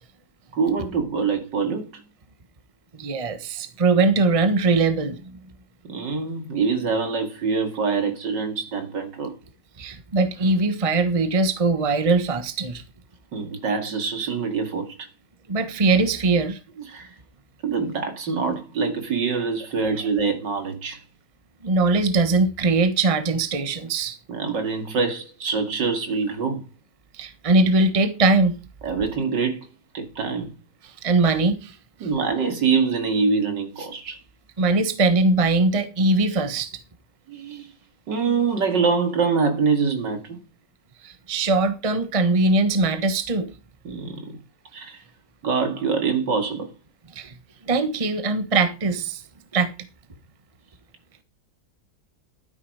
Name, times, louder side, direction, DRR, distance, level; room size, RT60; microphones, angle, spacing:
voice 1, 0.5-2.0 5.9-9.3 13.3-15.0 16.8-17.1 17.6-21.0 24.3-26.6 28.8-29.7 29.9-30.5 32.0-34.2 37.3-37.7 38.1-40.4 43.8-44.4 44.7-45.0 45.4-46.7, right 5 dB, 70° right, 2.8 m, -25 dB
voice 2, 2.9-5.4 9.8-12.8 15.5-16.6 21.6-24.2 27.2-28.5 31.0-31.7 34.6-36.7 41.0-43.5 47.1-47.3 47.7-49.2 49.5-49.7, right 3 dB, 20° right, 1.1 m, -21 dB
12.5 x 9.7 x 4.8 m
omnidirectional pair, 2.0 m